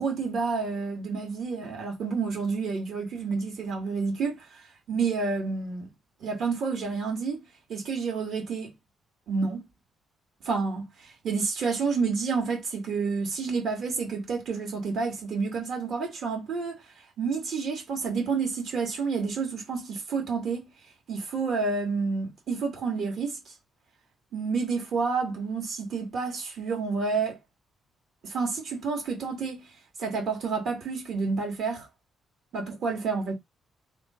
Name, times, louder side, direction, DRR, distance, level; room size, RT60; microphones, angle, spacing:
voice 1, 0.0-4.5 4.9-5.9 6.2-7.4 7.7-8.7 9.3-9.6 10.4-10.8 11.2-16.8 17.2-20.7 21.1-23.4 24.3-27.4 28.2-29.6 30.0-31.9 32.5-33.4, right 4 dB, 65° right, 2.3 m, -29 dB
3.5 x 2.6 x 4.4 m
cardioid pair, 90°, 0 cm